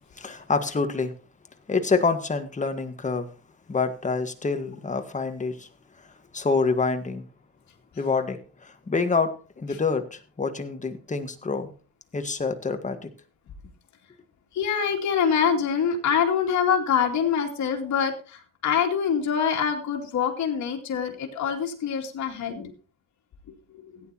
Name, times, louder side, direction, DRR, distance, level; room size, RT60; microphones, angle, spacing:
voice 1, 0.1-1.1 1.7-3.3 3.7-5.7 6.0-7.2 7.9-11.7 12.1-13.1, left 4 dB, 25° left, 1.7 m, -27 dB
voice 2, 14.5-22.7, left 7 dB, 70° left, 2.6 m, -25 dB
16.5 x 9.6 x 3.0 m
cardioid pair, 90°, 30 cm